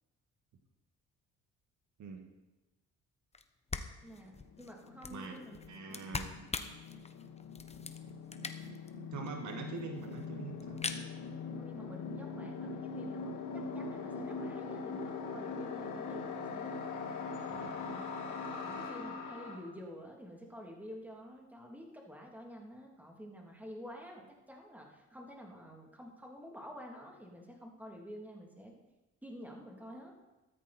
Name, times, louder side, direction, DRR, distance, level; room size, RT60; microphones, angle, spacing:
sound 1, 3.3-3.4 3.7-8.9 9.3-9.4 9.5-9.6 9.8-10.3 10.6-11.0, left 4 dB, 20° left, 1.0 m, -42 dB
sound 2, 4.0-4.1 4.3-19.6, left 4 dB, 80° left, 3.0 m, -42 dB
voice 1, 4.0-5.6 5.9-6.0 11.6-16.8 17.4-28.7 29.2-30.1, equal, 5° right, 0 dB, 3.1 m, -49 dB
voice 2, 5.7-6.3 9.1-10.8 17.5-17.7, right 5 dB, 70° right, 4 dB, 1.9 m, -44 dB
14.0 x 13.0 x 4.4 m, 1.1 s
cardioid pair, 90°, 30 cm